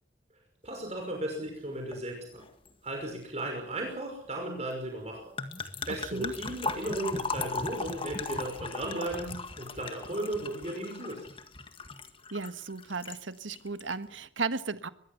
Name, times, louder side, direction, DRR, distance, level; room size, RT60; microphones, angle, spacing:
voice 1, 0.6-2.4 2.8-5.3 5.9-11.2, right 1 dB, 35° right, 2 dB, 5.7 m, -35 dB
sound 1, 1.9-2.1 2.3-2.7 5.4-13.2 13.5-13.9, left 3 dB, 25° left, 1.9 m, -38 dB
voice 2, 5.9-6.3 12.3-14.9, right 4 dB, 80° right, 12 dB, 1.5 m, -35 dB
23.0 x 21.0 x 7.1 m, 0.62 s
head